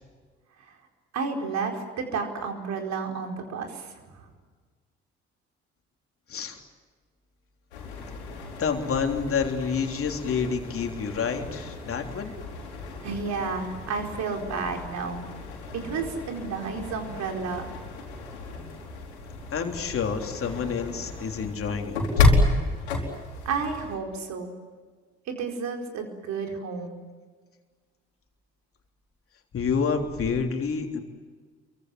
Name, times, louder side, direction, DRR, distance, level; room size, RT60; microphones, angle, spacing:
voice 1, 1.1-4.3 13.0-15.2 15.7-17.7 23.4-24.5 25.3-27.0, right 5 dB, 55° right, 3 dB, 4.7 m, -31 dB
sound 1, 7.7-24.0, left 2 dB, 75° left, 3.8 m, -31 dB
voice 2, 8.6-12.3 19.5-22.2 29.5-31.0, left 6 dB, 40° left, 3 dB, 3.4 m, -28 dB
28.0 x 23.5 x 7.8 m, 1.5 s
figure-of-eight pair, 45°, 33 cm